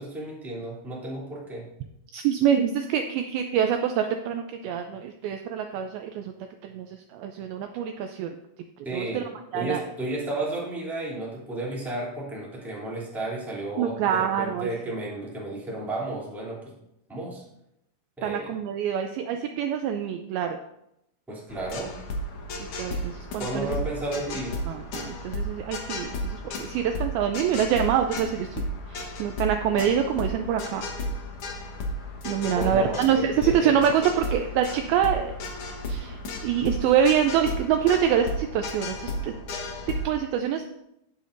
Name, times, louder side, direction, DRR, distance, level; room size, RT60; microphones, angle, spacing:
voice 1, 0.0-1.7 8.8-9.3 9.5-16.8 17.1-17.4 18.2-18.5 21.3-22.0 23.4-24.6 32.5-33.8, right 2 dB, ahead, -5 dB, 1.8 m, -33 dB
voice 2, 2.1-6.3 6.6-8.3 8.9-9.2 9.5-9.8 13.8-14.7 18.2-20.6 22.6-23.8 24.7-28.6 28.9-30.9 32.2-35.4 35.9-36.2 36.4-39.3 40.0-40.7, right 8 dB, 80° right, 6 dB, 2.2 m, -25 dB
sound 1, 21.5-40.1, left 1 dB, 90° left, 1.3 m, -34 dB
18.0 x 6.8 x 2.6 m, 0.81 s
omnidirectional pair, 4.8 m